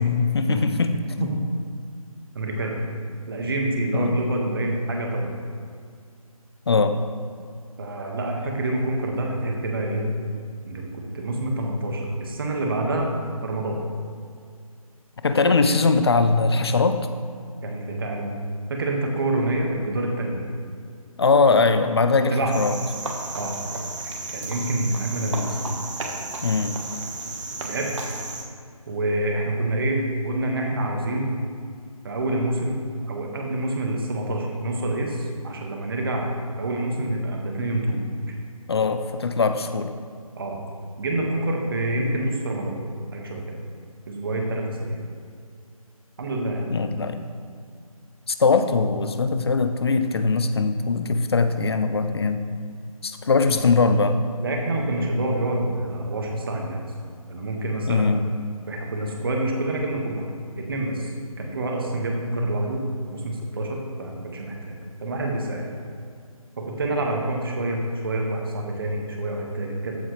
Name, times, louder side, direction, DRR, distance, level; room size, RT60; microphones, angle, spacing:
voice 1, 0.0-1.3 3.9-4.2 6.7-7.0 15.2-17.0 21.2-22.7 26.4-26.8 38.7-39.9 46.7-47.2 48.3-52.5 53.0-54.2 57.9-58.3, left 4 dB, 45° left, 9 dB, 0.7 m, -21 dB
voice 2, 2.3-2.8 3.3-5.3 7.8-10.0 10.6-13.1 13.4-13.8 17.6-18.4 18.7-20.5 22.2-22.6 23.3-23.6 24.0-25.6 27.6-28.1 28.9-31.3 32.0-36.3 36.6-38.0 40.4-40.6 41.0-42.8 43.1-43.6 44.1-45.0 46.2-46.7 53.5-53.6 54.4-56.9 57.3-58.1 58.7-60.2 60.5-61.1 61.4-65.7 66.6-70.0, right 1 dB, 40° right, 0 dB, 1.8 m, -27 dB
Cricket, 22.5-28.4, right 2 dB, 55° right, 1.6 m, -33 dB
14.5 x 7.8 x 3.3 m, 2.2 s
figure-of-eight pair, 165°, 19 cm